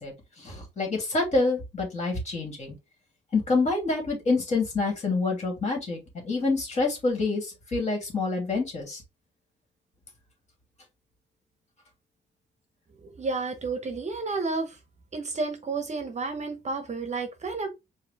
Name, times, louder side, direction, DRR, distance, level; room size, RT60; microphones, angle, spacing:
voice 1, 0.0-2.7 3.3-9.0, left 3 dB, 35° left, 2.5 m, -27 dB
voice 2, 13.0-14.8 15.1-17.7, right 3 dB, 35° right, 0.8 m, -31 dB
4.8 x 2.7 x 3.4 m
wide cardioid pair, 135°, 19 cm